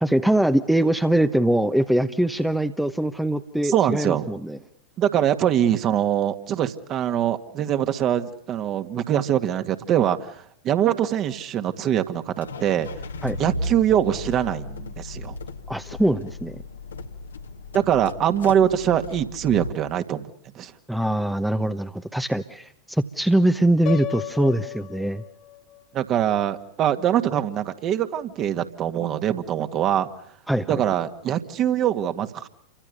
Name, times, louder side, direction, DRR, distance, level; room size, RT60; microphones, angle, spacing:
voice 1, 0.0-4.6 13.2-13.4 15.7-16.6 20.9-25.2 30.5-30.8, right 1 dB, 5° right, 10 dB, 1.1 m, -22 dB
voice 2, 3.6-4.3 5.0-10.3 10.6-12.9 13.4-15.4 17.7-20.3 20.5-20.7 25.9-30.1 30.7-32.5, right 10 dB, 35° right, 9 dB, 2.1 m, -23 dB
sound 1, 12.4-19.7, left 2 dB, 70° left, 1.8 m, -35 dB
Piano, 23.9-25.8, left 13 dB, 40° left, 2.2 m, -34 dB
30.0 x 24.5 x 6.8 m, 0.69 s
figure-of-eight pair, 90°, 0 cm